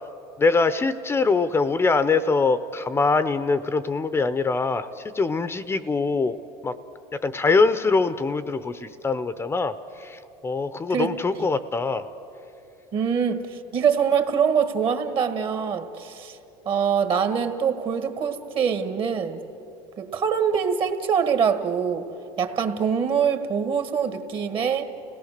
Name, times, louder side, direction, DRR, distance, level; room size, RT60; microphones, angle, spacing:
voice 1, 0.4-6.4 6.6-6.7 7.2-12.1, left 4 dB, 20° left, 13 dB, 0.7 m, -23 dB
voice 2, 12.9-16.4 16.6-19.4 20.0-22.1 22.4-24.8, right 7 dB, 45° right, 9 dB, 1.7 m, -24 dB
30.0 x 17.5 x 6.6 m, 3.0 s
supercardioid pair, 105°, 12 cm